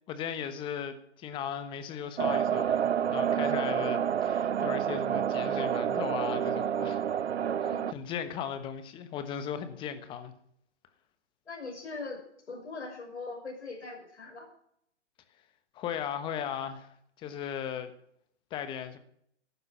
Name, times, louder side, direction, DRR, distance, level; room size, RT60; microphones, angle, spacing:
voice 1, 0.1-7.0 7.6-10.3 15.7-16.9 17.2-17.9 18.5-19.0, left 8 dB, 15° left, 1.1 m, -37 dB
sound 1, 2.2-7.9, right 9 dB, 65° right, 0.5 m, -29 dB
voice 2, 7.6-7.9 11.5-14.5, left 3 dB, 70° left, 6.0 m, -41 dB
13.5 x 12.5 x 5.9 m
figure-of-eight pair, 130°, 35 cm